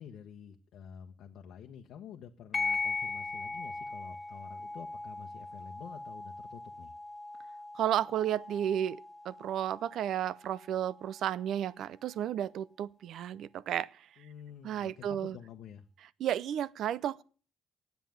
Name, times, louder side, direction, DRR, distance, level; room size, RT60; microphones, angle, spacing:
voice 1, 0.0-6.9 14.2-15.8, left 8 dB, 80° left, 1.0 m, -49 dB
sound 1, 2.5-11.5, left 4 dB, 30° left, 1.9 m, -40 dB
voice 2, 7.7-9.0 9.2-13.9 14.6-15.4 16.2-17.2, right 10 dB, 75° right, 0.5 m, -32 dB
9.4 x 8.2 x 9.1 m
cardioid pair, 90°, 0 cm